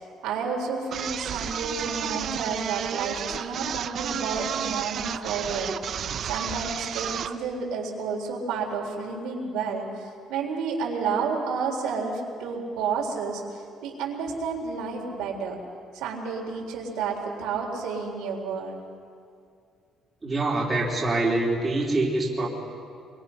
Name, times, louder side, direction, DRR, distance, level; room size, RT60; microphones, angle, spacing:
voice 1, 0.2-5.7 6.2-15.6 15.9-18.8, right 5 dB, 90° right, -1 dB, 3.8 m, -31 dB
sound 1, 0.9-7.4, right 8 dB, 40° right, 0.6 m, -32 dB
voice 2, 20.2-22.5, right 2 dB, 15° right, -4 dB, 3.6 m, -25 dB
27.0 x 22.0 x 5.8 m, 2.3 s
cardioid pair, 170°, 0 cm